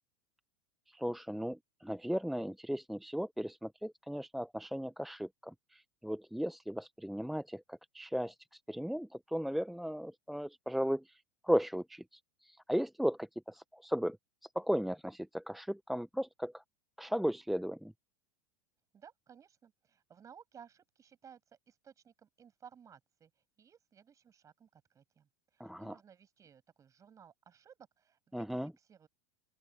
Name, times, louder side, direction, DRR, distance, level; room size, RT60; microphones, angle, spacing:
voice 1, 0.9-8.3 8.7-14.2 14.5-16.6 17.0-17.9 25.6-25.9 28.3-28.7, equal, ahead, 1.0 m, -36 dB
voice 2, 18.9-29.1, right 7 dB, 30° right, 7.7 m, -58 dB
open air
hypercardioid pair, 95°, 11 cm